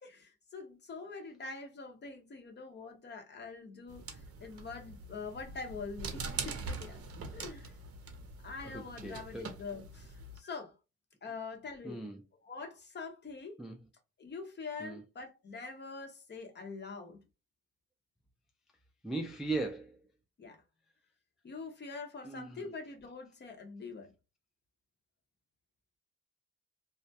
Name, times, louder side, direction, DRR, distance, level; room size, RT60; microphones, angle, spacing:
voice 1, 0.0-7.0 7.3-7.7 8.4-10.7 11.2-12.0 12.4-13.6 14.2-17.2 20.4-20.6 21.4-24.1, left 4 dB, 35° left, 0.7 m, -44 dB
sound 1, 3.9-10.4, right 4 dB, 50° right, 0.6 m, -43 dB
voice 2, 8.6-9.5 10.4-10.5 11.8-12.2 13.6-13.8 14.8-15.0 19.0-20.0 22.2-22.7, right 2 dB, ahead, 0.3 m, -38 dB
2.2 x 2.0 x 2.6 m
cardioid pair, 90°, 30 cm